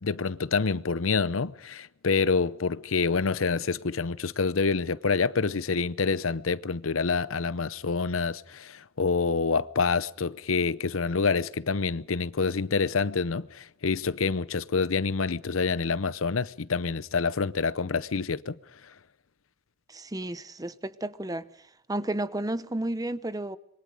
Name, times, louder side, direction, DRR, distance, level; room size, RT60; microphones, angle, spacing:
voice 1, 0.0-18.6, left 4 dB, 80° left, 0.8 m, -27 dB
voice 2, 19.9-21.5 21.9-23.6, right 1 dB, 20° right, 0.8 m, -32 dB
26.0 x 23.0 x 5.0 m
head